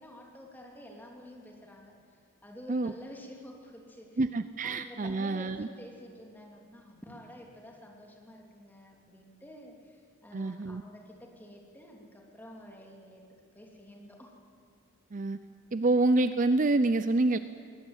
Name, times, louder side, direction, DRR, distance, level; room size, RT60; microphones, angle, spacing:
voice 1, 0.0-4.2 4.6-14.3, equal, 10° left, -1 dB, 3.1 m, -49 dB
voice 2, 4.2-5.7 10.3-10.8 15.1-15.4 15.7-17.4, right 2 dB, 35° right, 12 dB, 0.5 m, -27 dB
22.5 x 18.5 x 9.1 m, 2.3 s
head